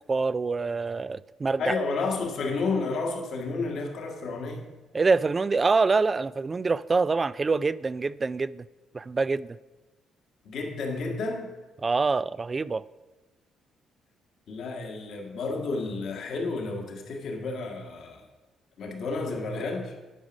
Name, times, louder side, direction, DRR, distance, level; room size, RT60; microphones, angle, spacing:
voice 1, 0.1-1.7 4.9-8.6 8.9-9.6 11.8-12.8, right 4 dB, 35° right, 0.3 m, -25 dB
voice 2, 1.6-4.7 10.4-11.5 14.5-18.3 18.8-19.9, left 3 dB, 70° left, 1.7 m, -31 dB
11.0 x 4.9 x 6.1 m
supercardioid pair, 65°, 0 cm